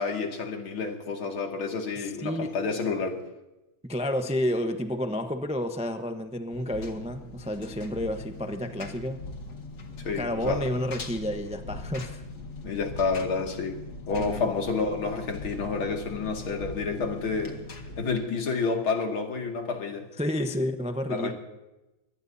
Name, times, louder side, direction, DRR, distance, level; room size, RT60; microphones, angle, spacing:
voice 1, 0.0-3.2 10.0-10.7 12.6-13.8 14.1-17.6 18.0-20.1 21.1-21.3, left 4 dB, 85° left, 2 dB, 3.0 m, -29 dB
voice 2, 2.0-2.5 3.9-9.2 10.1-12.2 14.2-14.4 20.2-21.3, left 1 dB, 10° right, 6 dB, 0.4 m, -30 dB
Engine, 6.5-18.1, left 2 dB, 50° left, 2.3 m, -40 dB
24.5 x 18.0 x 2.7 m, 0.99 s
omnidirectional pair, 2.2 m